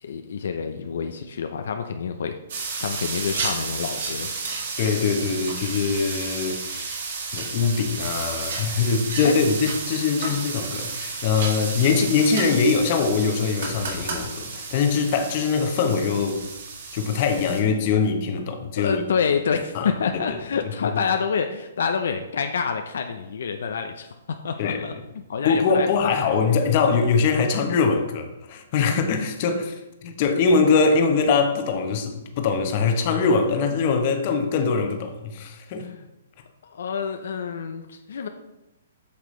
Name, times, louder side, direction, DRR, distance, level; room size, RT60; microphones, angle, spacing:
voice 1, 0.0-2.4 2.8-4.3 9.2-9.3 18.8-24.1 24.4-24.9 25.3-25.9 35.8-36.1 36.6-38.3, left 6 dB, 70° left, 0.6 m, -27 dB
sound 1, 2.5-17.6, right 4 dB, 60° right, 1.8 m, -32 dB
voice 2, 4.8-7.0 7.3-16.4 16.9-19.0 19.7-19.9 20.3-20.4 20.6-21.0 24.6-24.8 25.4-35.9, left 5 dB, 40° left, 0.9 m, -22 dB
8.5 x 5.9 x 3.2 m
hypercardioid pair, 155°, 0 cm